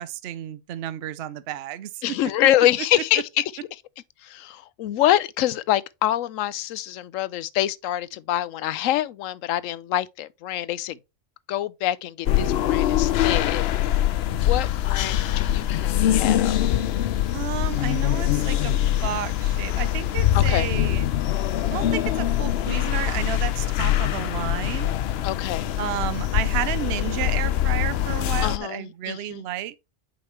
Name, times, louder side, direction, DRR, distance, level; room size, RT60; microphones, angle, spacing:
voice 1, 0.0-2.0 17.3-21.1 21.6-24.9 25.8-29.7, right 12 dB, 60° right, 0.8 m, -32 dB
voice 2, 2.0-3.4 4.2-11.0 11.5-13.6 14.3-16.6 20.3-20.7 25.2-25.8 28.4-29.4, left 13 dB, 90° left, 1.0 m, -25 dB
sound 1, 12.3-28.6, left 12 dB, 60° left, 0.7 m, -23 dB
7.8 x 5.1 x 3.2 m
omnidirectional pair, 1.3 m